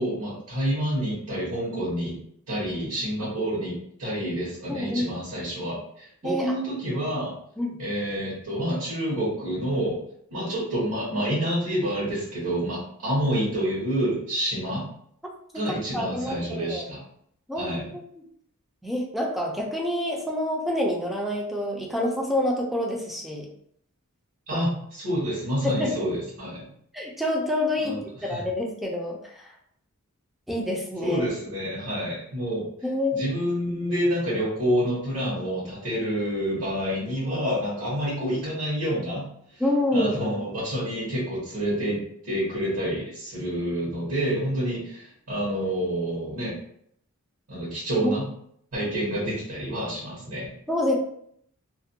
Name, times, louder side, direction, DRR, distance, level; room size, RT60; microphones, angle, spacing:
voice 1, 0.0-2.2 2.5-7.3 7.8-10.0 10.3-14.9 15.5-17.0 17.6-17.9 24.5-26.7 27.8-28.0 28.2-28.4 31.0-32.7 33.1-39.6 39.9-46.5 47.5-48.3 48.7-50.5, equal, 70° right, -8 dB, 1.1 m, -28 dB
voice 2, 4.7-5.1 6.2-6.5 7.6-7.8 15.5-15.7 15.9-16.9 17.5-17.8 18.8-23.5 24.5-24.6 25.6-25.9 26.9-28.0 28.2-29.4 30.5-31.3 32.8-33.2 39.6-40.2 48.0-48.1 50.7-51.0, left 1 dB, ahead, -1 dB, 0.4 m, -27 dB
2.5 x 2.1 x 2.6 m, 0.69 s
head